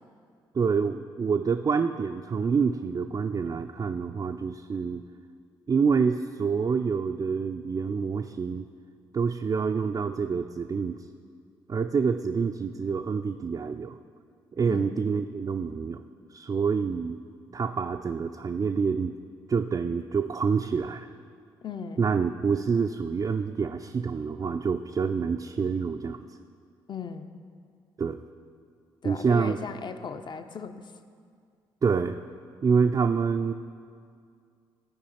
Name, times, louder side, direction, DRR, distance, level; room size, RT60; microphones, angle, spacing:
voice 1, 0.5-5.0 5.7-8.7 9.1-11.1 11.7-14.0 14.5-16.0 16.3-17.2 17.5-19.1 19.5-21.1 22.0-26.2 28.0-28.2 29.0-29.6 31.8-32.2 32.6-33.5, right 5 dB, 30° right, 5 dB, 0.4 m, -27 dB
voice 2, 21.6-22.1 26.9-27.3 29.0-30.9, left 5 dB, 40° left, 9 dB, 0.6 m, -37 dB
14.5 x 4.9 x 4.2 m, 2.2 s
hypercardioid pair, 45°, 12 cm